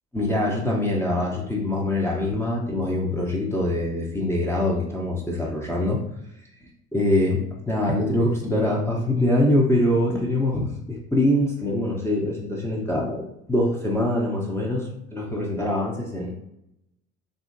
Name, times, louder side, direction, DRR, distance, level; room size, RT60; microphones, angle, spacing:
voice 1, 0.1-6.0 6.9-7.4 7.7-16.3, left 1 dB, 10° left, -5 dB, 0.6 m, -24 dB
2.8 x 2.6 x 2.5 m, 0.80 s
hypercardioid pair, 65°, 33 cm